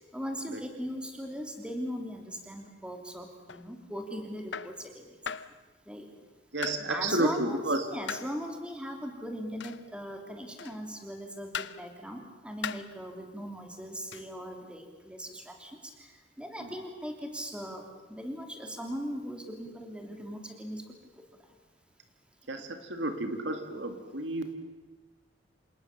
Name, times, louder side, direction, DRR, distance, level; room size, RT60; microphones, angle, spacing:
voice 1, 0.1-5.1 5.9-6.1 6.9-15.7 16.0-16.1 16.4-20.8 22.5-22.6, equal, 5° right, 3 dB, 3.0 m, -39 dB
sound 1, 3.5-3.7 4.5-4.8 5.3-5.6 6.6-6.9 8.1-8.3 9.6-9.9 10.6-10.9 11.5-11.8 12.6-12.9 14.1-14.3, left 7 dB, 70° left, 0.8 m, -38 dB
voice 2, 6.5-7.9 16.6-16.7 22.5-24.5, right 2 dB, 75° right, 7 dB, 2.3 m, -31 dB
27.5 x 19.5 x 7.3 m, 1.2 s
head